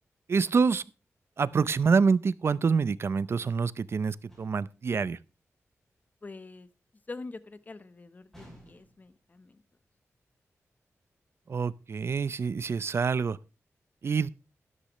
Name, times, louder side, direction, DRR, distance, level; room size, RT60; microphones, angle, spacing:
voice 1, 0.3-0.8 1.4-5.2 11.5-13.4 14.0-14.3, right 5 dB, 50° right, 0.5 m, -26 dB
Window hit without breaking, 4.3-4.8 8.3-9.1, equal, 5° left, 7.7 m, -53 dB
voice 2, 6.2-6.7 7.1-9.6, left 3 dB, 30° left, 0.9 m, -44 dB
12.0 x 11.5 x 3.1 m
wide cardioid pair, 120°, 5 cm